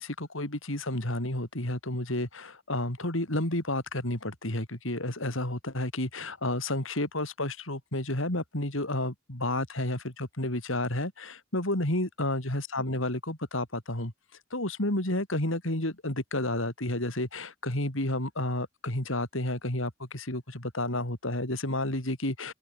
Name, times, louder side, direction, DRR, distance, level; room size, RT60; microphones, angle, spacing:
voice 1, 0.0-14.1 14.5-22.5, left 1 dB, 80° left, 4.7 m, -31 dB
head